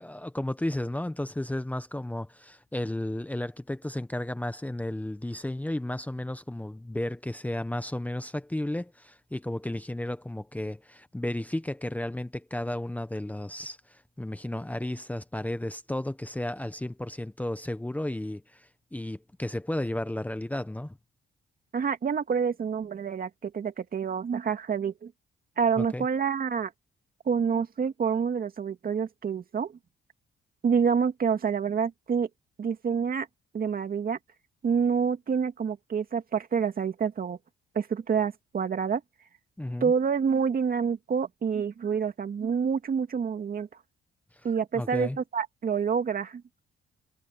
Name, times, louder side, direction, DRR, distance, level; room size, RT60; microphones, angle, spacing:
voice 1, 0.0-21.0 25.8-26.0 39.6-39.9 44.7-45.2, left 1 dB, 5° left, 1.1 m, -33 dB
voice 2, 21.7-25.1 25.6-26.7 27.3-29.7 30.6-32.3 32.6-33.3 33.5-34.2 34.6-37.4 37.7-39.0 39.8-43.7 44.4-46.4, right 6 dB, 45° right, 2.3 m, -27 dB
cardioid pair, 90°, 20 cm